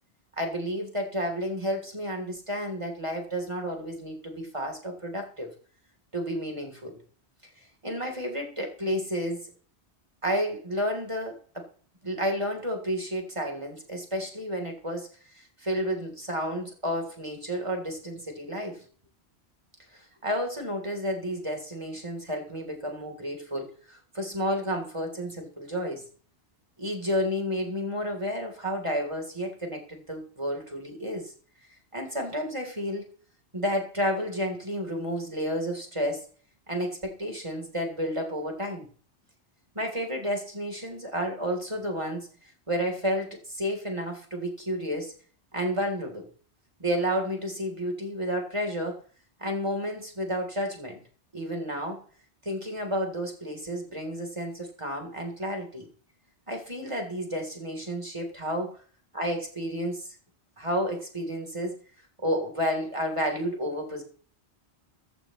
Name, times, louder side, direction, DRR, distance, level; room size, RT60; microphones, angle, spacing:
voice 1, 0.4-5.5 6.1-7.0 7.8-9.5 10.2-11.7 12.0-18.8 19.9-26.0 26.8-31.3 31.9-33.0 33.5-36.3 36.7-38.9 39.8-42.3 42.7-45.1 45.5-46.3 46.8-49.0 49.4-51.0 51.3-52.0 52.4-55.9 56.5-58.8 59.2-60.1 60.6-61.8 62.2-64.0, equal, 25° right, 2 dB, 3.6 m, -31 dB
15.0 x 15.0 x 3.1 m, 0.43 s
omnidirectional pair, 1.1 m